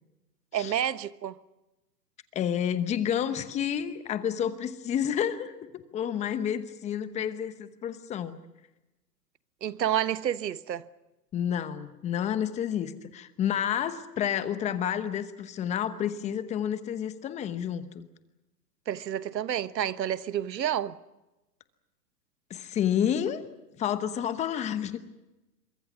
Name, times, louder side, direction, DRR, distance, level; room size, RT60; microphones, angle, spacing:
voice 1, 0.5-1.4 9.6-10.8 18.9-21.0, right 10 dB, 85° right, 1.2 m, -29 dB
voice 2, 2.3-8.4 11.3-18.1 22.5-23.4 23.8-25.0, left 9 dB, 15° left, 0.9 m, -30 dB
26.5 x 24.0 x 6.1 m
hypercardioid pair, 140°, 50 cm